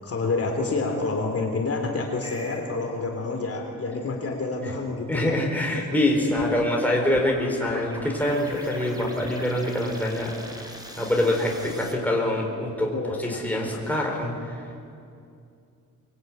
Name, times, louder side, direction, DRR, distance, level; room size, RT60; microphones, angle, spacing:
voice 1, 0.0-5.9 6.2-6.4 12.9-13.5, left 3 dB, 45° left, 2 dB, 3.2 m, -29 dB
sound 1, 2.2-2.7 6.4-11.9, equal, 10° right, 3.4 m, -41 dB
voice 2, 5.1-10.3 11.0-12.9 13.2-14.4, left 1 dB, 5° left, -1 dB, 4.5 m, -25 dB
24.0 x 22.0 x 9.3 m, 2.5 s
wide cardioid pair, 150°, 34 cm